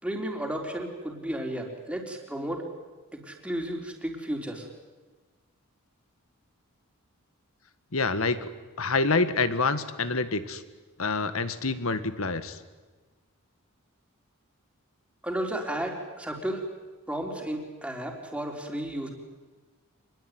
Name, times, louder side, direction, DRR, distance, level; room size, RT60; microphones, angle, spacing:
voice 1, 0.0-2.6 3.1-4.7 15.2-16.7 17.1-19.1, right 1 dB, 5° right, 1 dB, 4.1 m, -33 dB
voice 2, 7.9-8.5 8.8-10.6 11.0-12.6, left 3 dB, 70° left, 11 dB, 1.8 m, -27 dB
26.5 x 21.0 x 9.5 m, 1.3 s
head